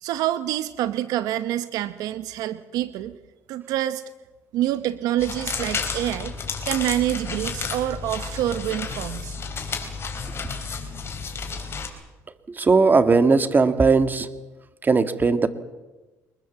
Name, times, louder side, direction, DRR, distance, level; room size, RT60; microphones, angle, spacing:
voice 1, 0.0-3.2 3.5-4.0 4.5-6.3 6.6-9.4, right 13 dB, 85° right, 13 dB, 0.8 m, -26 dB
sound 1, 5.2-11.9, left 5 dB, 40° left, 4.5 m, -31 dB
voice 2, 12.5-14.3 14.8-15.5, right 4 dB, 30° right, 11 dB, 1.8 m, -18 dB
24.0 x 21.0 x 7.5 m, 1.1 s
cardioid pair, 85°, 6 cm